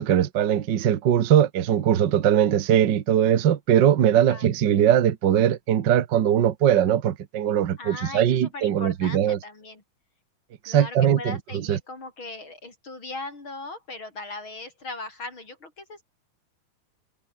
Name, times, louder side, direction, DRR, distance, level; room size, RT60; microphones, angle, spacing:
voice 1, 0.0-9.4 10.6-11.4 11.7-11.8, right 10 dB, 75° right, 1.0 m, -20 dB
voice 2, 7.8-9.8 10.7-16.0, left 2 dB, 35° left, 5.1 m, -39 dB
omnidirectional pair, 3.9 m